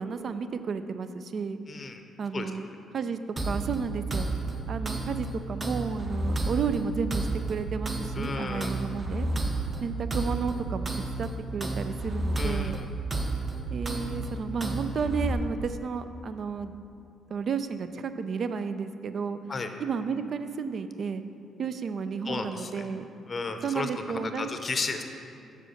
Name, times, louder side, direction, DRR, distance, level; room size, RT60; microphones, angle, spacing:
voice 1, 0.0-1.6 2.2-4.3 4.7-9.3 9.8-10.9 11.2-12.8 13.7-16.7 17.3-19.4 19.8-21.2 21.6-23.1 23.6-24.6, right 5 dB, 55° right, 10 dB, 0.4 m, -32 dB
voice 2, 1.7-2.0 2.3-2.5 8.2-8.7 12.4-12.9 19.5-19.7 22.2-22.9 23.3-24.0 24.4-25.0, left 3 dB, 35° left, 6 dB, 0.6 m, -33 dB
sound 1, 3.4-15.3, right 2 dB, 25° right, 0.8 m, -32 dB
6.6 x 5.0 x 6.4 m, 2.7 s
cardioid pair, 90°, 0 cm